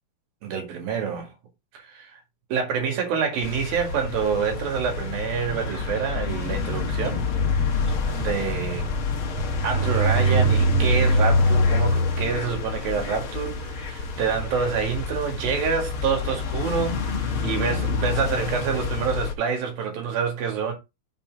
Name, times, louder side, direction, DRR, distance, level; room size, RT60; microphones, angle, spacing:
voice 1, 0.4-1.3 1.7-2.2 2.5-7.2 8.1-8.9 9.6-20.7, right 6 dB, 70° right, 3.8 m, -27 dB
sound 1, 3.4-19.3, left 2 dB, 65° left, 1.4 m, -25 dB
7.0 x 4.5 x 4.7 m
omnidirectional pair, 4.4 m